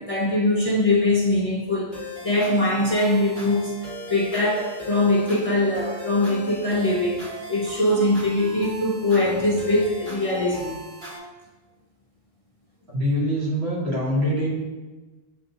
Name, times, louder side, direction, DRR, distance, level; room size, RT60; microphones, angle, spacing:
voice 1, 0.0-1.9 2.2-10.8, left 1 dB, 50° left, -3 dB, 0.4 m, -22 dB
sound 1, 1.9-11.2, left 1 dB, 25° right, 1.4 m, -38 dB
voice 2, 12.9-14.5, equal, 75° right, -4 dB, 1.5 m, -24 dB
7.5 x 2.7 x 2.6 m, 1.2 s
omnidirectional pair, 1.1 m